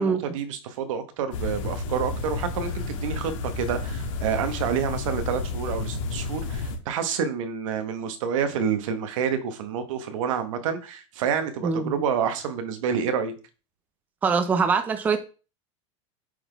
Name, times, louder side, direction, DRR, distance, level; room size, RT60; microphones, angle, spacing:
voice 1, 0.0-13.3, right 7 dB, 80° right, 1.3 m, -28 dB
sound 1, 1.3-6.8, left 3 dB, 75° left, 1.6 m, -31 dB
voice 2, 14.2-15.2, right 5 dB, 10° right, 0.5 m, -23 dB
8.4 x 3.9 x 3.5 m
supercardioid pair, 175°, 17 cm